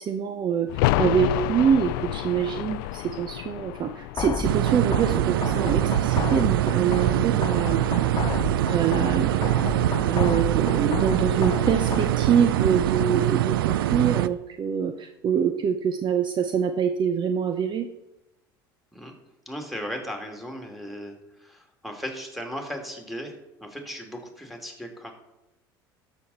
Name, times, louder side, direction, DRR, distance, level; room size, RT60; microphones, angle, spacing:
voice 1, 0.0-7.8 8.7-9.7 10.0-17.9, right 7 dB, 40° right, 8 dB, 0.8 m, -25 dB
sound 1, 0.7-6.3 6.5-6.6, left 16 dB, 70° left, 0.4 m, -29 dB
sound 2, 4.2-12.2, left 6 dB, 35° left, 0.7 m, -32 dB
sound 3, 4.4-14.3, right 13 dB, 80° right, 0.4 m, -24 dB
voice 2, 19.5-25.1, equal, ahead, 3 dB, 2.6 m, -37 dB
13.0 x 6.4 x 4.2 m, 0.91 s
hypercardioid pair, 70°, 12 cm